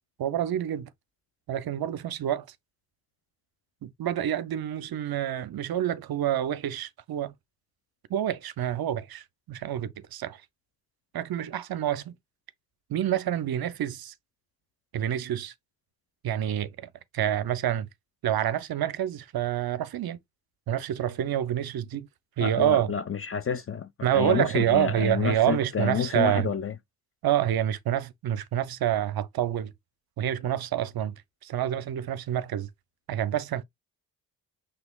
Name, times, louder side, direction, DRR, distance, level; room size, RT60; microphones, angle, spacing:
voice 1, 0.2-0.9 1.5-2.5 3.8-7.3 8.1-10.4 11.1-12.1 12.9-14.1 14.9-15.5 16.2-17.9 18.2-20.2 20.7-22.1 22.4-22.9 24.0-26.5 27.2-29.7 30.2-31.1 31.4-32.7 33.1-33.6, right 11 dB, 50° right, 0.6 m, -27 dB
voice 2, 22.4-26.7, left 7 dB, 30° left, 0.4 m, -29 dB
6.0 x 3.0 x 2.3 m
hypercardioid pair, 40°, 49 cm